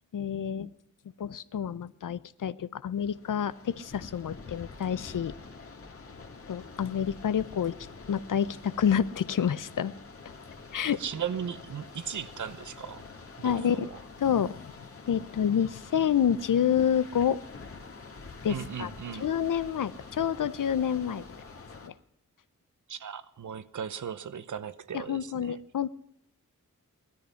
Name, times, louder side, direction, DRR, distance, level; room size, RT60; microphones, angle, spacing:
voice 1, 0.1-0.7 1.2-5.3 6.5-7.8 8.1-9.9 10.7-11.0 13.4-13.9 14.2-14.7 15.1-17.4 18.4-18.9 19.2-21.2 21.8-21.9 24.9-25.9, left 8 dB, 80° left, 0.8 m, -28 dB
sound 1, 3.0-21.9, left 4 dB, 45° left, 2.0 m, -47 dB
voice 2, 10.9-13.0 13.4-13.9 18.5-19.3 22.9-25.6, right 8 dB, 70° right, 0.9 m, -37 dB
18.0 x 13.5 x 5.7 m
wide cardioid pair, 140°, 31 cm